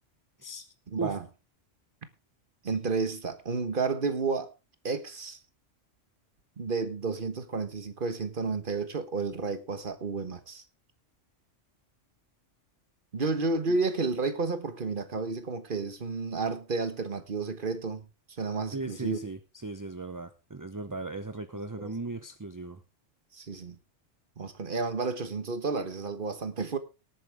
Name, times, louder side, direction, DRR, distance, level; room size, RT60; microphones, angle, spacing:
voice 1, 0.9-1.2 2.6-4.5 4.8-5.4 6.6-10.6 13.1-18.1 18.4-19.2 21.8-21.9 23.3-23.8 24.4-26.8, right 4 dB, 45° right, 1.5 m, -31 dB
voice 2, 18.7-22.8, right 3 dB, 20° right, 0.6 m, -37 dB
18.5 x 8.9 x 3.5 m
omnidirectional pair, 1.3 m